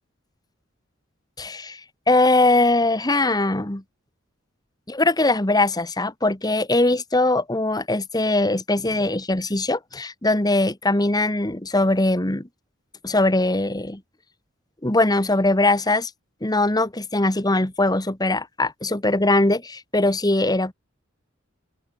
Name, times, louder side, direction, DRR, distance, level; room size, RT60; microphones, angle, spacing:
voice 1, 1.4-1.8 2.1-3.8 4.9-12.5 13.0-14.0 14.8-16.1 16.4-20.7, left 2 dB, 20° left, 1.6 m, -21 dB
open air
head